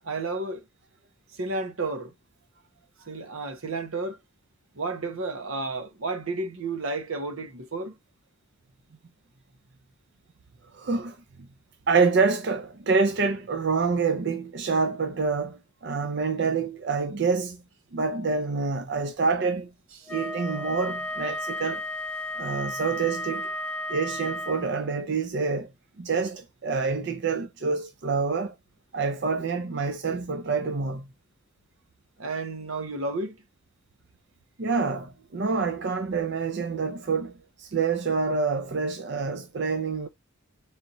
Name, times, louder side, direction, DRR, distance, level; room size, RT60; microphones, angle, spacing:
voice 1, 0.0-0.6 1.3-2.1 3.1-4.2 4.7-8.0 20.0-20.1 32.2-33.4, right 3 dB, 85° right, 1.0 m, -32 dB
voice 2, 10.7-11.2 11.9-17.6 17.9-19.7 20.1-21.8 22.4-23.5 23.9-25.7 26.0-28.5 28.9-31.1 34.6-37.3 37.6-40.1, right 4 dB, 55° right, 0.5 m, -27 dB
Wind instrument woodwind instrument, 20.1-25.0, left 1 dB, 5° left, 0.7 m, -33 dB
4.2 x 3.4 x 2.6 m
head